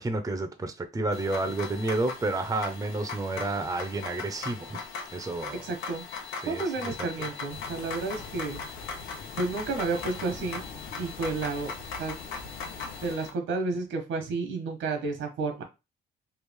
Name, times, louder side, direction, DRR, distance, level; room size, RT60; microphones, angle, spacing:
voice 1, 0.0-4.8 5.1-5.6 6.4-6.6 7.0-7.1, right 2 dB, 15° right, 7 dB, 0.6 m, -30 dB
sound 1, 1.1-13.3, left 4 dB, 85° left, 0.8 m, -39 dB
voice 2, 5.6-6.0 6.4-8.6 9.4-10.6 11.0-11.7 12.0-12.2 13.0-15.6, right 3 dB, 80° right, 4 dB, 1.2 m, -31 dB
sound 2, 7.5-13.2, left 3 dB, 50° left, 0.9 m, -44 dB
3.2 x 2.4 x 3.5 m, 0.26 s
cardioid pair, 90°, 20 cm